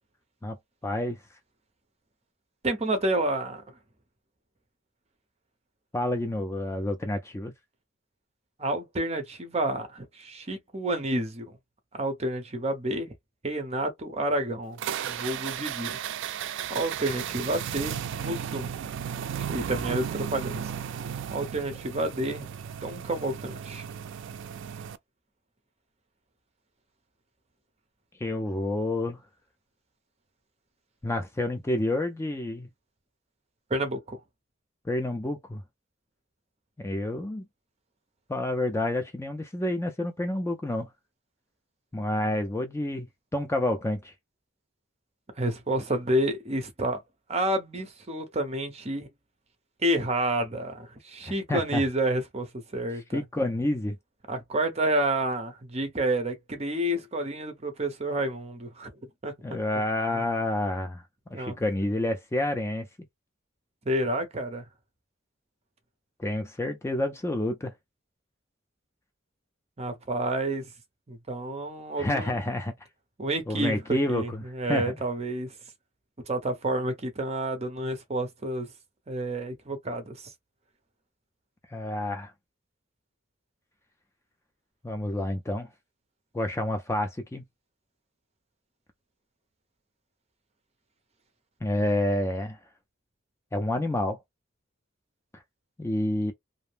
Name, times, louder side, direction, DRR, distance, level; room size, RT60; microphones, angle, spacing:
voice 1, 0.8-1.2 5.9-7.5 28.2-29.2 31.0-32.7 34.9-35.6 36.8-37.4 38.3-40.9 41.9-43.1 43.3-44.1 51.2-51.8 53.1-54.0 59.4-61.0 61.3-62.9 66.2-67.7 72.0-72.7 73.5-74.4 74.7-74.9 81.7-82.3 84.8-85.7 86.3-87.4 91.6-92.6 93.5-94.2 95.3-95.4 95.8-96.3, left 1 dB, 15° left, 0.4 m, -29 dB
voice 2, 2.6-3.6 8.6-11.5 11.9-13.1 13.4-16.0 16.7-18.8 19.5-20.7 21.3-22.5 22.8-23.8 33.7-34.2 45.4-47.0 47.3-49.1 49.8-53.2 54.3-58.9 59.2-59.3 60.1-60.2 61.3-61.6 63.9-64.6 69.8-70.7 71.1-72.4 73.2-75.5 76.3-78.7 79.1-80.3, right 1 dB, 35° right, 0.7 m, -29 dB
sound 1, 14.8-25.0, right 8 dB, 65° right, 0.3 m, -35 dB
2.6 x 2.0 x 3.3 m
head